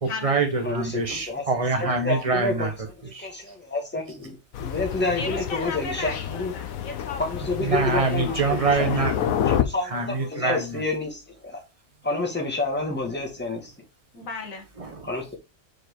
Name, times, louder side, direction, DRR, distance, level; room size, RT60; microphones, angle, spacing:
voice 1, 0.0-2.7 3.1-3.3 7.6-9.3 9.8-10.8 14.8-15.1, right 4 dB, 25° right, 1.3 m, -25 dB
voice 2, 0.6-1.4 1.8-2.5 3.2-6.5 7.2-8.6 9.5-11.6 12.0-13.7 15.0-15.4, left 2 dB, 10° left, 1.5 m, -29 dB
Thunder, 4.5-9.6, left 10 dB, 90° left, 1.1 m, -29 dB
voice 3, 5.1-7.4 7.7-8.5 14.1-14.7, left 4 dB, 75° left, 1.8 m, -36 dB
4.8 x 4.6 x 4.5 m
omnidirectional pair, 1.4 m